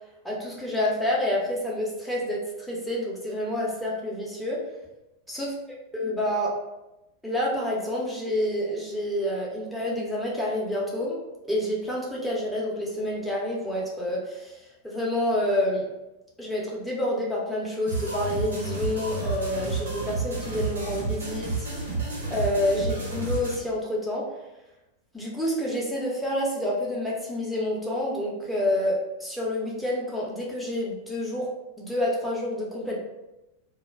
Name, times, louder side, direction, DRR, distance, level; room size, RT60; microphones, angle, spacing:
voice 1, 0.2-4.6 5.3-5.5 5.9-6.5 7.2-11.2 11.5-15.9 16.4-21.9 22.3-24.3 25.1-31.5 31.8-33.0, left 1 dB, ahead, -5 dB, 0.7 m, -28 dB
sound 1, 17.9-23.6, right 3 dB, 75° right, 0.8 m, -31 dB
2.2 x 2.1 x 3.2 m, 0.96 s
figure-of-eight pair, 90°, 0 cm